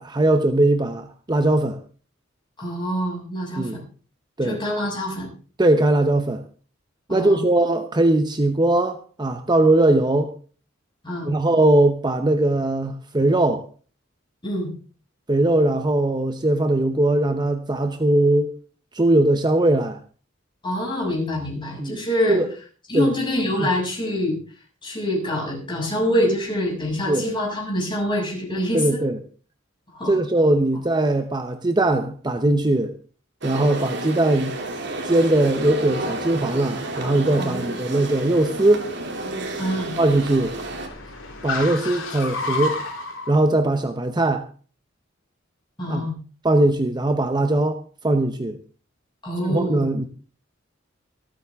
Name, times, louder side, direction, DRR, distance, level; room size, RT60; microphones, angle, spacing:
voice 1, 0.0-1.8 3.6-3.8 4.4-4.6 5.6-6.4 7.1-10.3 11.2-13.6 15.3-18.5 18.9-20.0 21.8-22.0 22.3-22.5 22.9-23.1 23.6-23.7 27.1-27.3 28.7-29.2 30.1-32.9 33.4-34.6 35.0-38.9 40.0-40.6 41.4-42.8 43.3-44.5 45.9-46.0 46.4-47.8 48.0-48.6 49.4-50.1, right 2 dB, 20° right, 0.8 m, -20 dB
voice 2, 2.6-3.7 4.4-5.3 7.1-7.4 11.0-11.3 14.4-14.7 20.6-22.4 22.9-24.4 24.8-29.1 29.9-30.2 37.4-37.6 39.6-39.9 41.8-41.9 45.8-46.2 49.2-49.9, equal, 25° left, 6.7 m, -25 dB
sound 1, 33.4-40.9, right 2 dB, 60° right, 2.7 m, -31 dB
Car, 34.5-43.3, left 2 dB, 75° left, 4.4 m, -35 dB
25.5 x 9.0 x 3.5 m
head